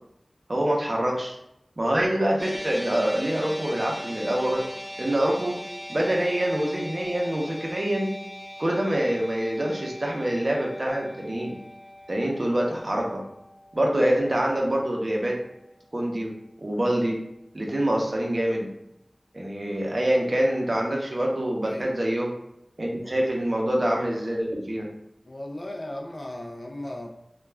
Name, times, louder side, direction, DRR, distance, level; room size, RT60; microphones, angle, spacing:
voice 1, 0.5-1.3 1.8-4.7 5.0-5.6 5.9-8.1 8.6-11.5 12.1-13.2 13.7-15.3 15.9-16.3 16.6-17.2 17.5-18.7 19.3-22.3 22.8-24.9, right 1 dB, 45° right, -1 dB, 0.6 m, -25 dB
sound 1, 2.4-14.8, equal, 15° left, 0.7 m, -40 dB
voice 2, 21.6-22.0 22.9-23.2 25.3-27.1, left 1 dB, 50° left, 1 dB, 0.4 m, -37 dB
2.2 x 2.2 x 3.3 m, 0.81 s
wide cardioid pair, 55°, 0 cm